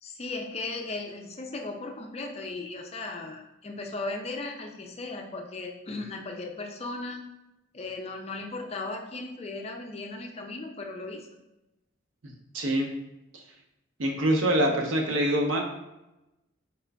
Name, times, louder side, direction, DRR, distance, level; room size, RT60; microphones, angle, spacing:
voice 1, 0.0-7.3 7.7-11.3, left 3 dB, 30° left, 3 dB, 0.4 m, -37 dB
voice 2, 12.5-12.9 13.3-13.4 14.0-15.6, right 1 dB, 80° right, 1 dB, 0.7 m, -25 dB
4.4 x 2.4 x 3.3 m, 0.94 s
head